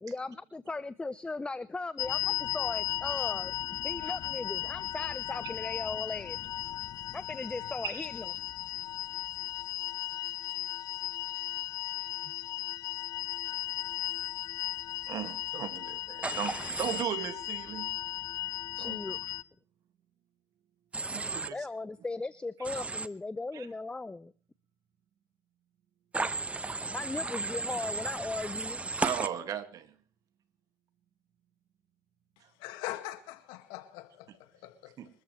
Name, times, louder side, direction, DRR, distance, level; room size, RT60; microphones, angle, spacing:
voice 1, 0.0-3.5 3.8-6.4 7.1-8.2 18.7-19.2 21.5-24.3 26.9-28.8, left 3 dB, 15° left, 0.7 m, -37 dB
sound 1, 2.0-19.4, left 13 dB, 55° left, 0.7 m, -36 dB
voice 2, 15.1-17.9 18.8-19.2 21.1-21.7 23.5-23.7 29.0-30.0 32.4-32.5 35.0-35.1, right 10 dB, 55° right, 2.1 m, -37 dB
Human voice / Train, 16.2-17.0 20.9-21.5 22.6-23.1 26.1-29.3, right 3 dB, 15° right, 1.1 m, -34 dB
voice 3, 32.4-35.0, left 15 dB, 80° left, 2.0 m, -42 dB
25.5 x 13.5 x 3.3 m
supercardioid pair, 90°, 8 cm